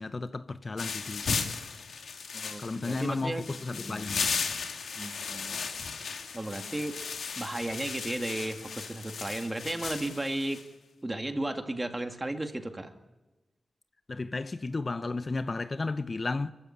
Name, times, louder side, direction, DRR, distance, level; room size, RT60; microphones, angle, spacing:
voice 1, 0.0-1.5 2.6-4.3 14.1-16.5, left 3 dB, 40° left, 0.7 m, -33 dB
sound 1, 0.8-10.6, left 5 dB, 90° left, 2.2 m, -36 dB
voice 2, 2.3-3.5 3.8-4.0 5.0-5.6 6.3-7.0 7.4-10.7 11.0-12.9, right 1 dB, 20° right, 2.2 m, -34 dB
28.0 x 15.5 x 9.9 m
wide cardioid pair, 85°, 0 cm